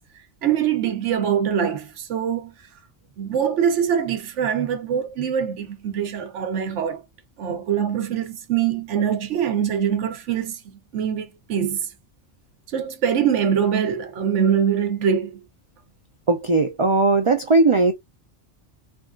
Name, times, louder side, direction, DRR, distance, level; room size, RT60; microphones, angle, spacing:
voice 1, 0.4-2.5 3.2-7.0 7.4-10.6 10.9-11.9 12.7-15.4, right 8 dB, 85° right, 1.0 m, -23 dB
voice 2, 16.3-17.9, right 3 dB, 50° right, 0.3 m, -18 dB
3.4 x 2.3 x 2.3 m
omnidirectional pair, 1.2 m